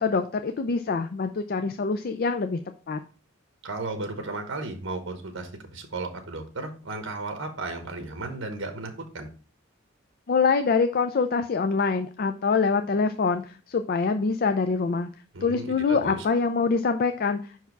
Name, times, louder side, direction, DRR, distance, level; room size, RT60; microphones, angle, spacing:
voice 1, 0.0-2.6 2.9-3.0 10.3-15.1 15.4-17.7, left 4 dB, 50° left, 8 dB, 0.4 m, -25 dB
voice 2, 3.6-9.3 15.3-16.2, right 3 dB, 80° right, 6 dB, 1.1 m, -34 dB
5.6 x 4.6 x 4.6 m, 0.38 s
head